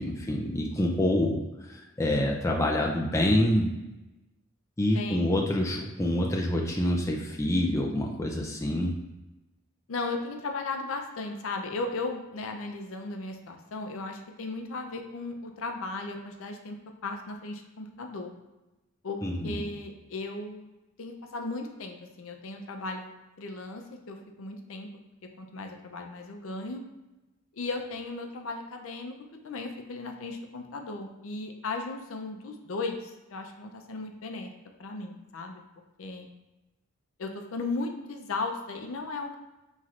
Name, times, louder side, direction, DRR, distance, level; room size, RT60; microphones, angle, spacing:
voice 1, 0.0-1.4 1.7-3.7 4.8-8.9 19.2-19.6, left 1 dB, 15° left, -1 dB, 0.4 m, -26 dB
voice 2, 4.9-5.4 9.9-16.8 17.0-18.3 19.0-20.7 21.0-23.1 23.4-24.9 25.4-26.8 27.5-29.1 29.4-34.5 34.8-35.6 36.0-36.3 37.2-39.4, left 3 dB, 70° left, 4 dB, 0.5 m, -36 dB
5.8 x 3.1 x 2.5 m, 1.0 s
head